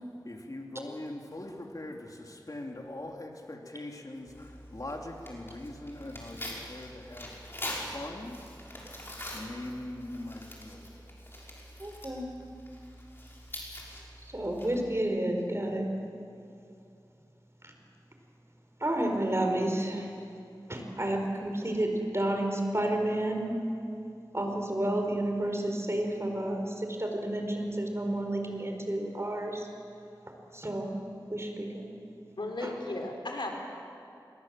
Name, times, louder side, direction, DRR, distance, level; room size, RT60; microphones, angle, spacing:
voice 1, 0.0-8.6 9.3-11.1 11.7-11.9, left 1 dB, 50° left, 1 dB, 3.1 m, -42 dB
Tearing, 4.3-15.0, left 1 dB, 30° left, 6.4 m, -44 dB
voice 2, 11.8-12.2 14.2-15.9 17.6-17.7 18.8-20.1 20.7-23.5 24.3-29.7 30.5-31.0 31.3-31.9 32.6-32.7, right 1 dB, 35° right, 3 dB, 4.8 m, -31 dB
voice 3, 32.4-33.5, left 2 dB, 85° left, 2 dB, 3.8 m, -35 dB
26.5 x 22.5 x 7.8 m, 2.6 s
wide cardioid pair, 45°, 8 cm